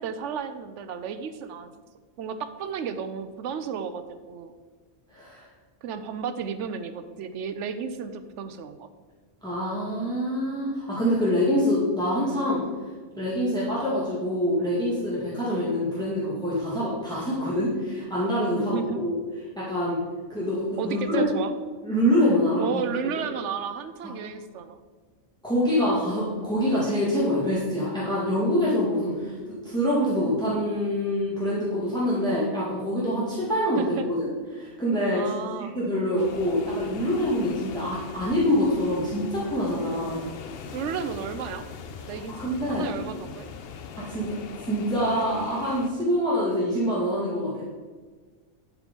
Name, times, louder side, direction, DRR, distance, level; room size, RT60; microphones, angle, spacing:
voice 1, 0.0-1.7 2.2-4.5 5.8-8.9 18.6-19.0 20.8-21.5 22.6-24.8 33.8-34.1 35.1-35.7 40.7-41.7 42.1-43.5, right 6 dB, 85° right, 10 dB, 0.9 m, -33 dB
voice 2, 5.1-5.5 9.4-12.6 13.2-19.1 19.6-20.0 20.3-21.2 21.8-22.6 25.4-35.2 35.7-40.2 42.1-42.9 44.0-44.3 44.7-47.6, equal, 5° left, -8 dB, 1.9 m, -25 dB
sound 1, 36.2-45.9, left 6 dB, 60° left, 0.8 m, -41 dB
11.0 x 4.9 x 5.2 m, 1.4 s
omnidirectional pair, 1.2 m